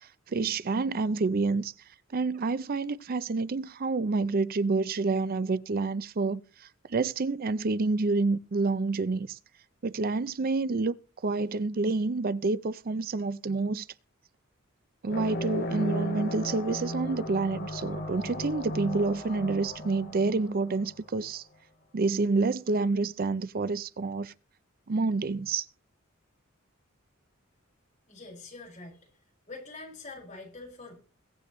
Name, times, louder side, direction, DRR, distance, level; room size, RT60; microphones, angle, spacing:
voice 1, 0.3-1.7 2.1-6.4 6.9-9.3 9.8-10.9 11.2-13.8 15.0-21.4 21.9-24.3 24.9-25.6, right 3 dB, 45° right, 0.5 m, -28 dB
sound 1, 15.1-21.2, equal, 50° left, 2.3 m, -35 dB
voice 2, 28.1-29.1 29.5-31.0, left 3 dB, 35° left, 5.6 m, -44 dB
22.0 x 7.7 x 3.1 m
head